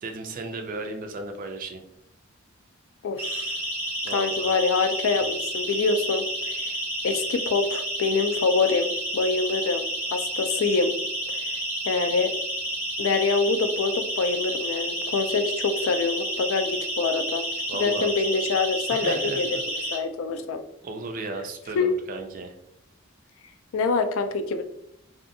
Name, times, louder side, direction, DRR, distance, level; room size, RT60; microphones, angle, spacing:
voice 1, 0.0-1.8 4.0-4.5 17.7-18.1 18.9-19.9 20.8-22.5, right 3 dB, 40° right, 6 dB, 0.3 m, -35 dB
voice 2, 3.0-3.5 4.1-6.7 7.0-9.8 10.1-10.9 11.9-12.3 13.0-17.4 17.7-19.6 19.9-20.6 21.8-22.0 23.7-24.6, left 4 dB, 70° left, 8 dB, 0.3 m, -25 dB
Siren, 3.2-20.0, right 1 dB, 10° right, 0.6 m, -30 dB
2.5 x 2.3 x 2.6 m, 0.74 s
head